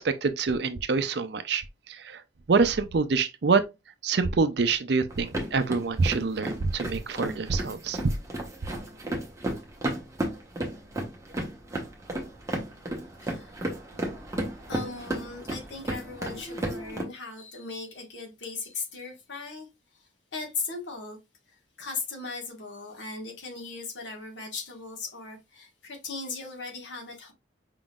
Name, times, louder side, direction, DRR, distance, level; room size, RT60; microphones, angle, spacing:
voice 1, 0.0-2.2 2.5-3.6 4.0-8.1, right 4 dB, 60° right, 0.5 m, -26 dB
sound 1, 5.1-17.0, right 1 dB, 15° right, 1.0 m, -34 dB
voice 2, 13.2-13.6 14.7-19.7 19.9-21.2 21.5-27.3, left 4 dB, 70° left, 1.5 m, -38 dB
5.0 x 3.7 x 2.3 m
head